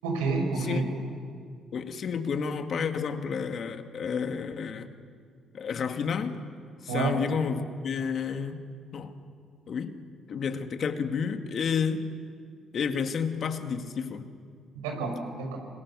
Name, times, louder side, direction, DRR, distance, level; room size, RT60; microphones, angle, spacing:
voice 1, 0.0-0.9 6.9-7.2 14.7-15.6, right 3 dB, 85° right, 3 dB, 5.7 m, -29 dB
voice 2, 1.7-4.9 5.5-6.4 6.8-8.6 8.9-9.1 9.7-10.0 10.3-12.0 12.7-14.3, left 6 dB, 55° left, 7 dB, 2.2 m, -30 dB
26.5 x 26.5 x 7.0 m, 2.2 s
hypercardioid pair, 50°, 0 cm